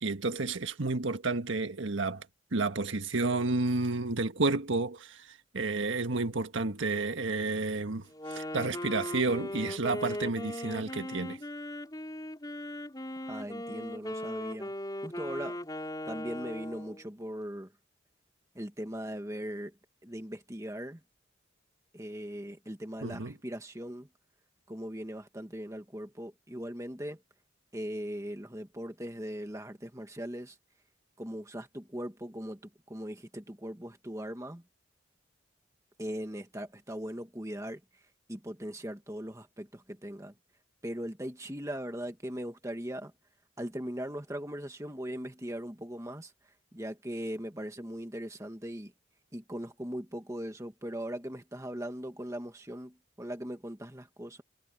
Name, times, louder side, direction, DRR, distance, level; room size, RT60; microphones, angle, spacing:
voice 1, 0.0-2.3 2.5-11.4 23.0-23.3, right 3 dB, 75° right, 1.5 m, -31 dB
Wind instrument woodwind instrument, 8.1-17.1, left 1 dB, 20° left, 4.2 m, -38 dB
voice 2, 13.2-14.7 15.0-15.6 16.1-17.7 18.6-19.8 20.0-21.0 21.9-24.1 24.7-27.2 27.7-30.6 31.2-34.6 36.0-37.8 38.3-40.3 40.8-43.1 43.6-48.9 49.3-54.4, equal, 15° right, 1.7 m, -39 dB
head